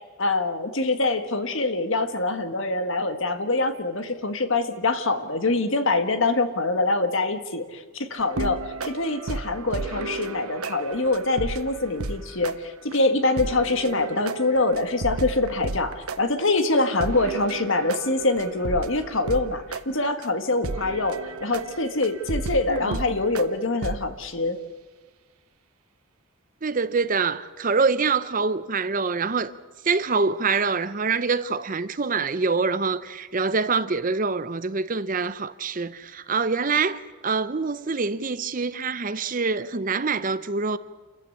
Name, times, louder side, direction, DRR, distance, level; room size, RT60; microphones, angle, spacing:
voice 1, 0.0-24.6, left 2 dB, 60° left, 1.6 m, -25 dB
sound 1, 8.2-12.2 12.4-12.5 12.9-13.0 13.4-16.2 16.6-16.7 17.0-19.5 19.7-19.8 20.2-20.3 20.6-23.4 23.8-24.0, right 3 dB, 85° right, 1.1 m, -33 dB
voice 2, 22.7-23.0 26.6-29.5 29.8-40.8, right 4 dB, 40° right, 0.7 m, -25 dB
28.0 x 14.5 x 8.5 m
head